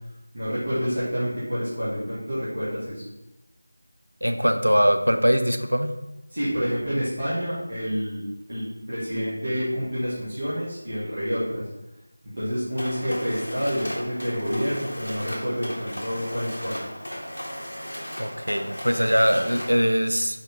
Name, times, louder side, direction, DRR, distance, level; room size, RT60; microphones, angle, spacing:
voice 1, 0.3-3.0 6.3-11.6 12.3-16.8, equal, 50° right, -11 dB, 1.4 m, -28 dB
voice 2, 4.2-6.0 18.2-20.4, equal, 85° right, 7 dB, 0.4 m, -22 dB
Mechanisms, 12.8-19.9, equal, 70° left, 1.1 m, -36 dB
4.5 x 3.1 x 3.4 m, 0.95 s
figure-of-eight pair, 165°, 0 cm